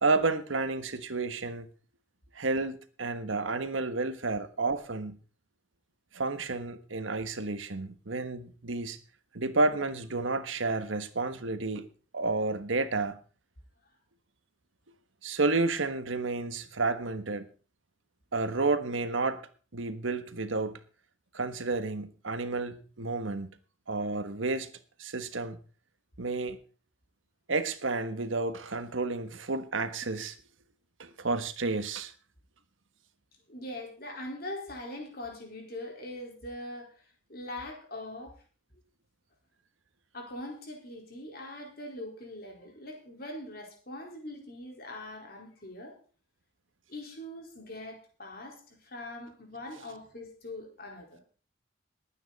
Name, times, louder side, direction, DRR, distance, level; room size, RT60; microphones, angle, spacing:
voice 1, 0.0-1.7 2.3-5.2 6.1-9.0 9.3-11.9 12.1-13.2 15.2-17.5 18.3-19.4 19.7-20.8 21.3-23.5 23.9-24.7 25.0-25.6 26.2-26.6 27.5-30.4 31.0-32.1, right 3 dB, 85° right, 10 dB, 1.4 m, -31 dB
voice 2, 33.5-36.9 37.3-38.3 40.1-46.0 46.9-51.2, left 1 dB, 50° left, 1 dB, 4.4 m, -42 dB
20.0 x 9.1 x 4.1 m, 0.39 s
head